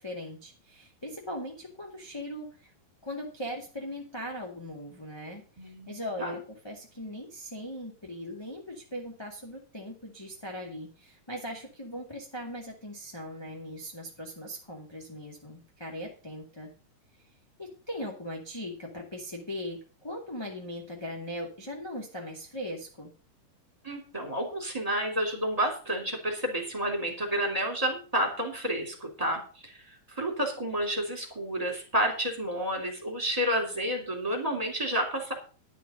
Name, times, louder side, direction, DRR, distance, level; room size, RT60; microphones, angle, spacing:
voice 1, 0.0-2.7 3.0-16.7 17.6-23.1, equal, 10° left, -2 dB, 1.7 m, -39 dB
voice 2, 5.6-6.3 23.8-35.3, equal, 10° right, 2 dB, 3.0 m, -30 dB
11.5 x 7.1 x 6.5 m, 0.37 s
omnidirectional pair, 3.8 m